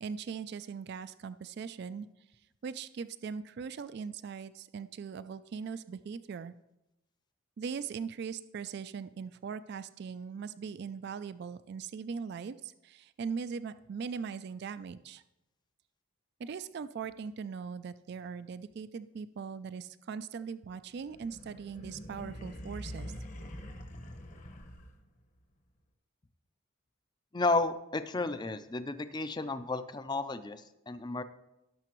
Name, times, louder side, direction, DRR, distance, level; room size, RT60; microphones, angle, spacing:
voice 1, 0.0-2.1 2.6-6.5 7.6-15.2 16.4-23.1, right 6 dB, 50° right, 14 dB, 0.3 m, -40 dB
sound 1, 21.0-25.2, equal, 35° left, 1.0 m, -44 dB
voice 2, 27.3-31.2, left 3 dB, 20° left, 12 dB, 0.4 m, -32 dB
17.5 x 6.7 x 3.0 m, 0.91 s
head